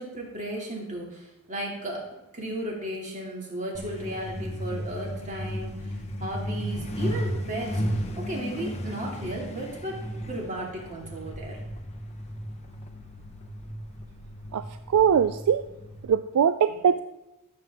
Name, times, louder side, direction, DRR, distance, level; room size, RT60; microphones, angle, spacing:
voice 1, 0.0-2.0 2.3-10.0 10.3-11.6, right 1 dB, 35° right, -2 dB, 2.5 m, -35 dB
Truck, 3.7-16.1, equal, 30° left, 0.9 m, -34 dB
voice 2, 14.5-15.6 16.1-17.0, right 8 dB, 80° right, 11 dB, 0.4 m, -22 dB
13.0 x 7.3 x 3.5 m, 0.97 s
head